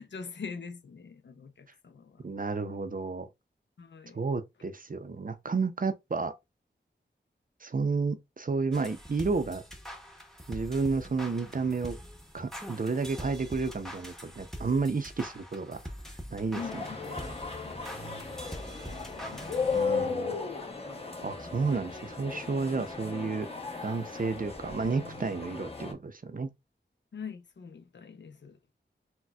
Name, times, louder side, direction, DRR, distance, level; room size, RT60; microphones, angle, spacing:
voice 1, 0.0-2.3 3.8-4.2 16.5-17.0 17.6-17.8 18.6-19.7 27.1-28.6, left 5 dB, 70° left, 0.5 m, -43 dB
voice 2, 2.2-3.3 4.1-6.3 7.6-9.6 10.5-12.0 12.3-15.8 16.3-16.8 19.7-20.3 21.2-23.5 23.8-26.5, right 4 dB, 45° right, 0.5 m, -31 dB
sound 1, 8.7-20.1, equal, ahead, 0.8 m, -44 dB
sound 2, 16.6-25.9, left 4 dB, 30° left, 0.9 m, -36 dB
4.2 x 2.2 x 2.3 m
wide cardioid pair, 50°, 19 cm